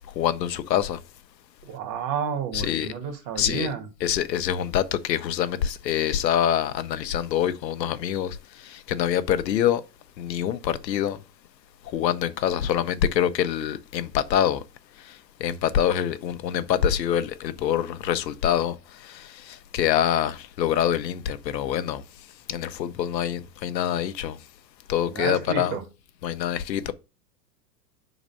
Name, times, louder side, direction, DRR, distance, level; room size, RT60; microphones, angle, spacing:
voice 1, 0.2-1.0 2.5-2.9 3.4-3.7 4.0-9.8 10.2-11.2 11.9-14.6 15.0-22.0 22.5-24.4 24.9-25.8 26.2-26.9, left 10 dB, 80° left, 0.8 m, -25 dB
voice 2, 1.6-3.8 25.0-25.8, right 7 dB, 45° right, 1.7 m, -31 dB
5.0 x 4.0 x 5.2 m
hypercardioid pair, 105°, 50 cm